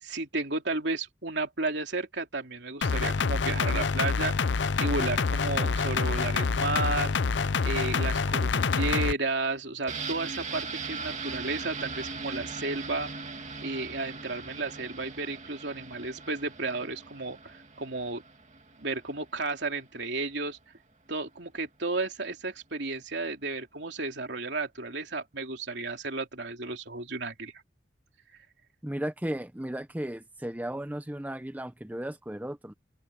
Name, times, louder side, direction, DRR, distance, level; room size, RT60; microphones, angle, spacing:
voice 1, 0.0-4.3 4.8-7.1 7.6-13.1 13.6-18.2 18.8-20.6 21.1-27.5, right 3 dB, 65° right, 3.2 m, -33 dB
sound 1, 2.8-9.1, left 5 dB, 70° left, 0.6 m, -27 dB
Guitar Reverb, 9.9-19.5 19.8-19.9, right 4 dB, 40° right, 2.4 m, -40 dB
voice 2, 28.8-32.7, right 1 dB, 10° right, 0.7 m, -35 dB
head